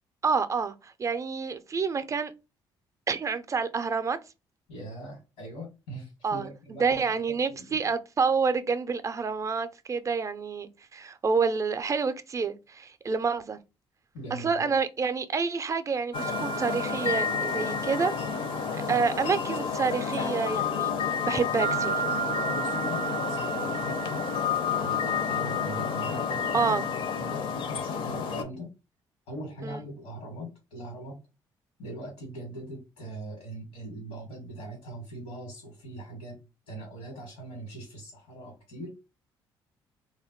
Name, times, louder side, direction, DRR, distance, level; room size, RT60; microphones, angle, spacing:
voice 1, 0.2-2.3 3.1-4.2 6.2-6.5 6.8-13.6 14.3-18.1 18.9-20.9 21.3-22.0 26.5-26.8 29.6-29.8, right 5 dB, 30° right, 0.4 m, -28 dB
voice 2, 4.7-7.8 14.1-14.7 22.4-24.3 24.8-26.8 27.2-28.7 29.3-31.1 31.8-36.4 36.7-38.9, right 1 dB, 90° left, 1.1 m, -41 dB
sound 1, 16.1-28.4, left 4 dB, 55° left, 0.5 m, -29 dB
2.2 x 2.0 x 3.6 m
supercardioid pair, 65°, 10 cm